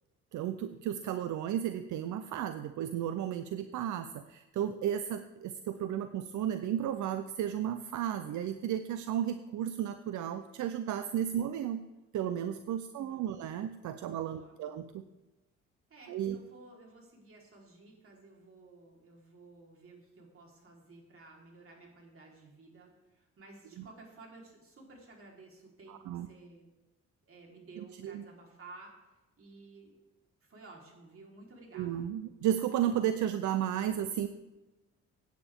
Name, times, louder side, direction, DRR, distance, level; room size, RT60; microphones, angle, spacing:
voice 1, 0.3-11.8 12.1-15.0 16.1-16.4 25.9-26.3 28.0-28.2 31.7-34.3, right 10 dB, 75° right, 10 dB, 0.7 m, -33 dB
voice 2, 12.9-13.5 14.1-14.7 15.9-26.7 27.2-30.0 30.4-32.1, right 3 dB, 45° right, -1 dB, 4.0 m, -54 dB
16.5 x 9.2 x 3.6 m, 1.1 s
cardioid pair, 90°, 30 cm